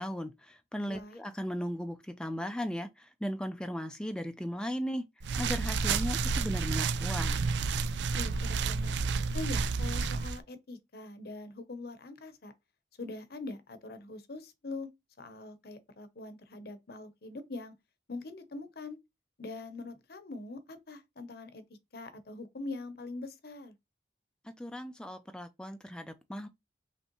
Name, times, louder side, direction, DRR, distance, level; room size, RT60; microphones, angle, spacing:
voice 1, 0.0-5.0 5.3-7.4 24.6-26.5, equal, 5° left, 0.4 m, -37 dB
voice 2, 0.9-1.2 8.1-8.9 9.3-12.5 13.0-14.9 15.2-17.7 18.1-19.0 19.4-21.6 21.9-23.7, left 2 dB, 60° left, 0.8 m, -43 dB
sound 1, 5.2-10.4, right 4 dB, 80° right, 0.4 m, -30 dB
5.3 x 3.2 x 3.0 m
head